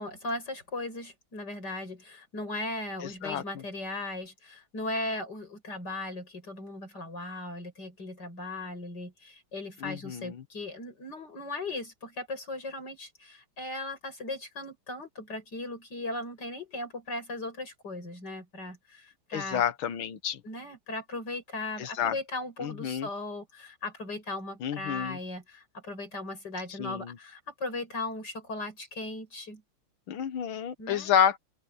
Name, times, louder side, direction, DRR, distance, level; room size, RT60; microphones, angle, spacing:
voice 1, 0.0-19.6 20.4-29.6 30.8-31.1, left 2 dB, 55° left, 8.5 m, -37 dB
voice 2, 3.0-3.4 9.8-10.4 19.3-20.4 21.8-22.2 22.6-23.1 24.6-25.2 26.8-27.2 30.1-31.4, left 9 dB, 90° left, 2.0 m, -29 dB
open air
omnidirectional pair, 2.2 m